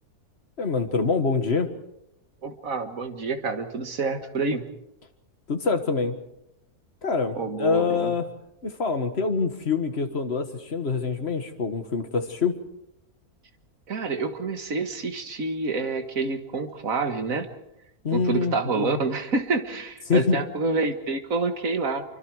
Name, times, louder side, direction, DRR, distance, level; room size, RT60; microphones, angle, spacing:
voice 1, 0.6-1.7 5.5-6.1 7.0-8.3 8.6-12.5 18.0-19.0 20.1-20.4, left 4 dB, 45° left, 7 dB, 1.9 m, -25 dB
voice 2, 2.4-4.7 7.3-8.1 13.9-17.5 18.1-22.0, right 3 dB, 60° right, 7 dB, 2.0 m, -28 dB
26.0 x 24.5 x 4.8 m, 0.83 s
omnidirectional pair, 1.6 m